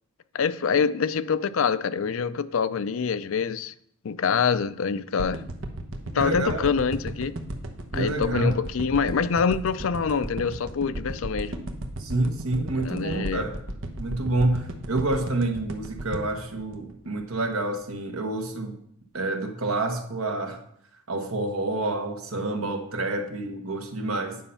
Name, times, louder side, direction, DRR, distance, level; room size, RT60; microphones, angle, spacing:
voice 1, 0.3-3.7 4.0-5.4 6.1-7.3 7.9-11.5 12.8-13.4, left 6 dB, 70° left, 0.4 m, -25 dB
sound 1, 5.2-17.5 17.9-18.0, right 1 dB, 65° right, 1.0 m, -35 dB
voice 2, 6.2-6.7 7.9-8.6 12.0-13.6 14.0-18.8 19.1-20.6 21.1-24.4, right 2 dB, 85° right, 1.3 m, -28 dB
9.3 x 5.6 x 5.6 m
head